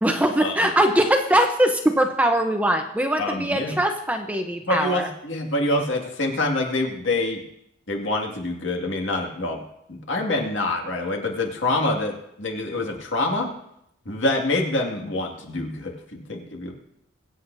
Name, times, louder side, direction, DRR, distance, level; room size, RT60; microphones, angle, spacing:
voice 1, 0.0-5.1, right 1 dB, 5° right, 4 dB, 0.8 m, -21 dB
voice 2, 3.2-3.7 4.7-7.4 7.9-9.6 9.9-13.5 14.1-16.7, left 2 dB, 65° left, 2 dB, 2.1 m, -26 dB
23.5 x 8.4 x 2.7 m, 0.77 s
head